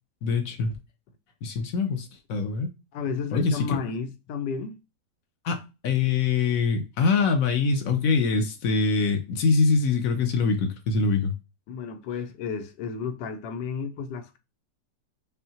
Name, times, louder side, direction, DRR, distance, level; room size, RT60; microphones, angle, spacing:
voice 1, 0.2-0.8 1.4-2.7 3.3-3.8 5.4-11.3, left 4 dB, 60° left, 1.0 m, -24 dB
voice 2, 2.9-4.8 11.7-14.4, left 5 dB, 80° left, 1.2 m, -32 dB
5.5 x 2.1 x 2.8 m
omnidirectional pair, 1.9 m